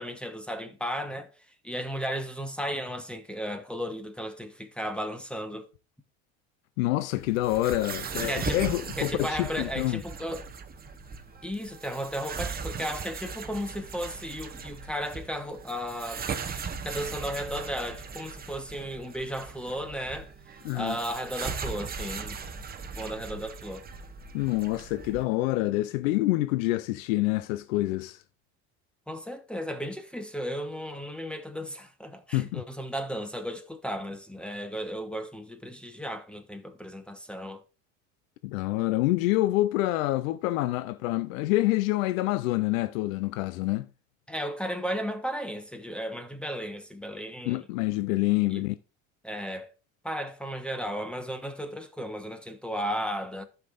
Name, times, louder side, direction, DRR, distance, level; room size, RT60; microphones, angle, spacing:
voice 1, 0.0-5.7 8.2-8.7 9.0-10.5 11.4-16.2 16.8-22.4 22.9-23.9 29.1-37.6 44.3-47.7 48.5-48.7 49.2-49.7 50.0-53.4, equal, 5° left, 1.1 m, -35 dB
voice 2, 6.8-10.0 20.6-21.0 24.3-28.2 32.3-32.6 38.4-43.9 47.5-48.7, left 17 dB, 75° left, 0.6 m, -27 dB
sound 1, 7.1-25.2, right 5 dB, 20° right, 1.0 m, -38 dB
14.0 x 5.8 x 2.5 m
hypercardioid pair, 95°, 40 cm